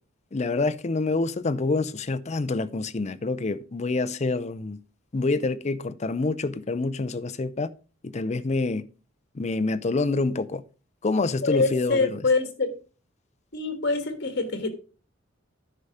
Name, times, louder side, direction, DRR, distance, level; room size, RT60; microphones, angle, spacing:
voice 1, 0.3-4.8 5.1-7.7 8.0-8.8 9.3-10.6 11.0-12.2, left 3 dB, 35° left, 0.5 m, -27 dB
voice 2, 11.4-12.7 13.5-14.7, left 3 dB, 60° left, 1.7 m, -25 dB
10.0 x 5.6 x 4.9 m
head